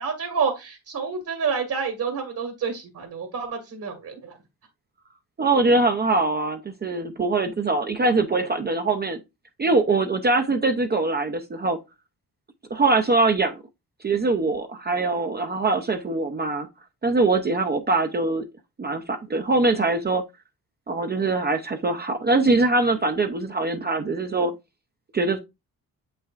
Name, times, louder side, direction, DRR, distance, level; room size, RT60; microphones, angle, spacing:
voice 1, 0.0-4.4, right 5 dB, 60° right, 1.6 m, -28 dB
voice 2, 5.4-9.2 9.6-11.8 12.7-13.6 14.0-16.7 17.0-18.4 18.8-20.2 20.9-24.5 25.1-25.4, right 3 dB, 25° right, 0.5 m, -22 dB
7.6 x 5.6 x 2.4 m
wide cardioid pair, 150°, 38 cm